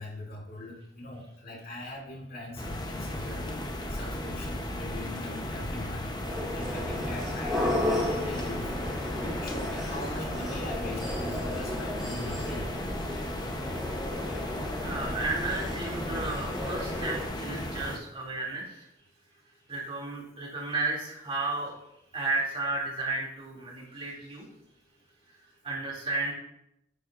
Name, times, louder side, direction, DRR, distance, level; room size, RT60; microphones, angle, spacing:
voice 1, 0.0-3.6 3.9-6.1 6.5-8.7 9.2-12.7, left 1 dB, 55° left, -3 dB, 2.6 m, -41 dB
sound 1, 2.6-18.0, left 1 dB, 25° left, 0.9 m, -36 dB
sound 2, 6.2-17.3, left 1 dB, ahead, 2.9 m, -34 dB
voice 2, 14.8-18.8 19.7-21.7 22.1-24.5 25.6-26.3, right 3 dB, 30° right, -3 dB, 2.7 m, -33 dB
10.0 x 9.0 x 2.5 m, 0.81 s
head